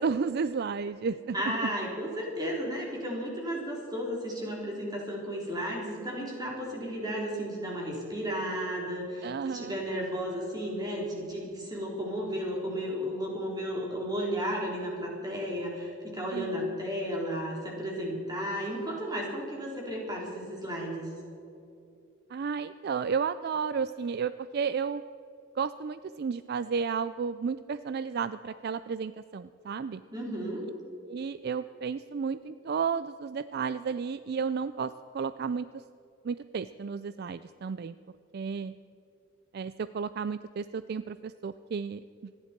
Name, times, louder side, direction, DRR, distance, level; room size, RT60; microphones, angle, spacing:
voice 1, 0.0-1.6 9.2-9.8 16.3-16.7 22.3-25.0 25.6-30.0 31.1-35.7 36.2-37.9 38.3-38.7 39.5-42.3, right 6 dB, 50° right, 13 dB, 0.3 m, -32 dB
voice 2, 1.3-21.1 30.1-30.6, equal, 20° right, -3 dB, 3.9 m, -33 dB
27.0 x 10.5 x 4.5 m, 2.7 s
head